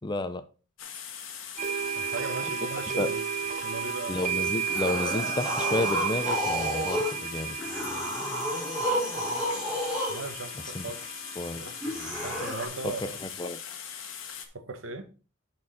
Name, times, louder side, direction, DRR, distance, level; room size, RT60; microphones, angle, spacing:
voice 1, 0.0-0.4 3.0-3.1 4.1-7.6 10.6-10.9 11.4-11.6 12.8-13.6, left 2 dB, 20° left, 0.6 m, -31 dB
sound 1, 0.8-14.5, left 8 dB, 85° left, 1.4 m, -41 dB
sound 2, 1.6-13.2, right 8 dB, 40° right, 0.5 m, -34 dB
voice 2, 1.9-3.2 3.6-4.2 10.1-11.0 11.6-11.7 12.2-13.2 14.5-15.1, right 3 dB, 80° right, 1.2 m, -37 dB
sound 3, 4.7-7.2 7.6-10.2 11.8-12.7, equal, 5° right, 3.4 m, -31 dB
11.0 x 4.6 x 4.2 m
head